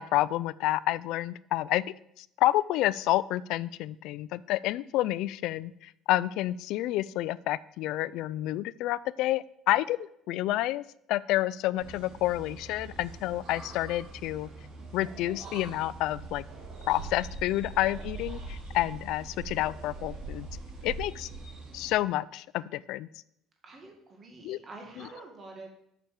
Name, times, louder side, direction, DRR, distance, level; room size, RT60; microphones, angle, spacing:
voice 1, 0.0-1.8 2.2-10.0 10.3-14.5 14.9-16.4 16.9-20.5 20.8-21.3 21.7-23.1 24.4-24.6, left 15 dB, 65° left, 19 dB, 0.4 m, -29 dB
sound 1, 11.8-21.9, right 3 dB, 70° right, 4.0 m, -42 dB
voice 2, 23.6-25.7, right 2 dB, 25° right, 2 dB, 1.9 m, -47 dB
7.1 x 6.8 x 7.7 m, 0.74 s
cardioid pair, 170°, 0 cm